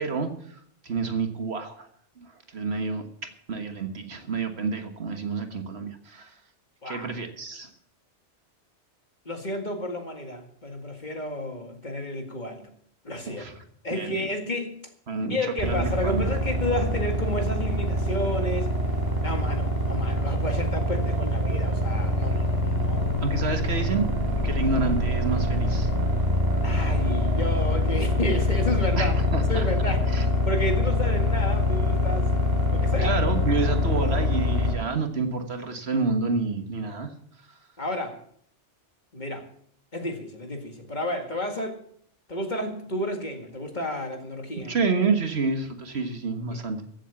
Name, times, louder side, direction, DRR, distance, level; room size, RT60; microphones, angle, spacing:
voice 1, 0.0-1.9 2.2-2.3 2.5-6.3 6.8-7.7 13.3-13.5 13.9-14.3 15.1-15.4 15.6-16.3 23.2-24.1 24.4-25.9 29.0-29.7 30.1-30.3 33.0-37.1 44.7-46.8, right 4 dB, 60° right, 6 dB, 1.7 m, -29 dB
voice 2, 9.3-12.6 13.0-13.4 13.8-14.8 15.3-18.7 19.2-23.1 26.6-29.1 29.5-32.3 32.7-33.1 37.8-38.2 39.1-39.5 39.9-41.8 42.3-44.8 46.5-46.6, left 1 dB, 40° left, 4 dB, 2.1 m, -31 dB
sound 1, 15.6-34.7, left 1 dB, 35° right, 3.8 m, -24 dB
15.0 x 7.8 x 7.2 m, 0.64 s
omnidirectional pair, 1.2 m